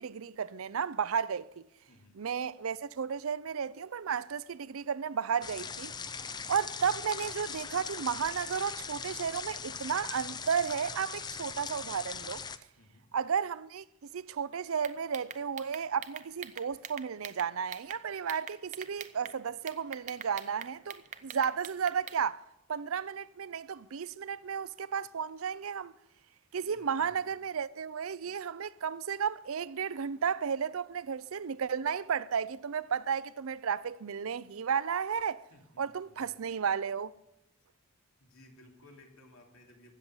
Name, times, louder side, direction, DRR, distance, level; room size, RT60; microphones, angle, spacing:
voice 1, 0.0-1.7 2.2-5.9 6.5-12.4 13.1-13.8 14.1-22.4 22.7-25.9 26.5-35.4 35.8-37.1, right 7 dB, 80° right, 0.5 m, -33 dB
voice 2, 1.9-2.2 12.8-13.1 26.6-27.4 35.5-36.4 38.2-39.9, left 1 dB, 85° left, 3.0 m, -58 dB
sound 1, 5.4-12.6, left 6 dB, 20° left, 0.4 m, -40 dB
sound 2, 14.8-18.0 18.3-19.4 19.7-22.2, right 8 dB, 35° right, 0.6 m, -44 dB
16.0 x 7.0 x 9.9 m
head